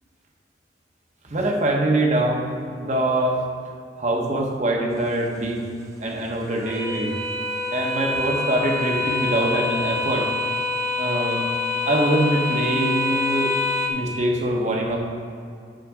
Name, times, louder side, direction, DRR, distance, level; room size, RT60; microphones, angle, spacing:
voice 1, 1.3-3.4 4.0-5.6 6.0-7.1 7.7-10.3 11.0-11.4 11.8-13.5 13.9-15.0, right 1 dB, 40° right, 0 dB, 1.1 m, -23 dB
sound 1, 4.9-13.9, left 2 dB, 15° right, 0.7 m, -27 dB
9.1 x 4.1 x 6.2 m, 2.4 s
head